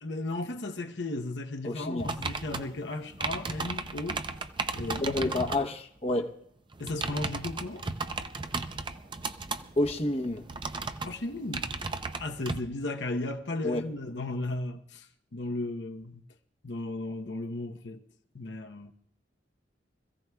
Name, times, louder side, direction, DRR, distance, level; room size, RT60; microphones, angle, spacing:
voice 1, 0.0-4.2 4.7-5.5 6.8-7.9 11.0-11.7 12.2-16.2 16.6-18.0 18.3-18.9, left 2 dB, 70° left, 0.9 m, -35 dB
voice 2, 1.6-2.1 5.0-6.3 9.8-10.4 13.6-13.8, left 1 dB, 35° left, 0.9 m, -29 dB
sound 1, 2.0-5.7 6.7-12.6, right 3 dB, 25° right, 0.5 m, -35 dB
25.5 x 15.5 x 2.3 m
head